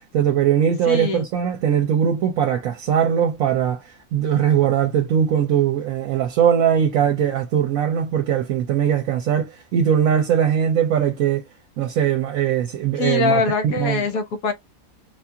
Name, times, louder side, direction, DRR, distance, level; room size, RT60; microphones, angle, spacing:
voice 1, 0.0-11.4 11.8-14.0, right 9 dB, 75° right, 1.0 m, -20 dB
voice 2, 0.9-1.3 13.0-14.5, left 4 dB, 75° left, 1.3 m, -22 dB
4.6 x 2.4 x 2.7 m
omnidirectional pair, 1.5 m